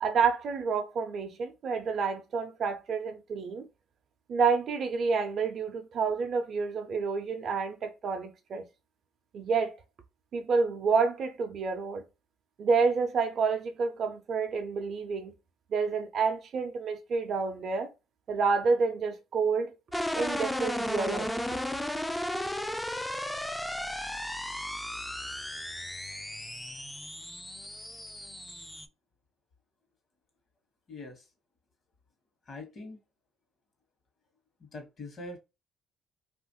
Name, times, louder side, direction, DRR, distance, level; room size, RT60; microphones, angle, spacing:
voice 1, 0.0-3.7 4.3-8.6 9.3-9.7 10.3-12.0 12.6-15.3 15.7-17.9 18.3-19.8 20.1-21.4, right 5 dB, 55° right, 0.4 m, -29 dB
sound 1, 19.9-28.9, left 1 dB, 5° left, 0.3 m, -35 dB
voice 2, 30.9-31.3 32.5-33.0 34.6-35.4, left 2 dB, 50° left, 1.0 m, -43 dB
2.9 x 2.4 x 2.7 m
cardioid pair, 95°, 0 cm